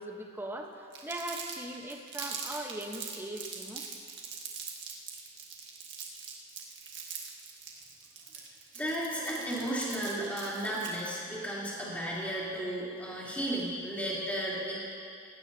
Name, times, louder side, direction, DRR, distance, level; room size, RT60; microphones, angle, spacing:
voice 1, 0.0-3.8, right 1 dB, 10° right, 2 dB, 1.0 m, -40 dB
Crumpling crinkling, 0.9-11.1, right 6 dB, 60° right, 1.7 m, -42 dB
voice 2, 8.8-14.7, right 1 dB, 10° left, -8 dB, 3.3 m, -34 dB
19.0 x 16.5 x 2.8 m, 2.4 s
head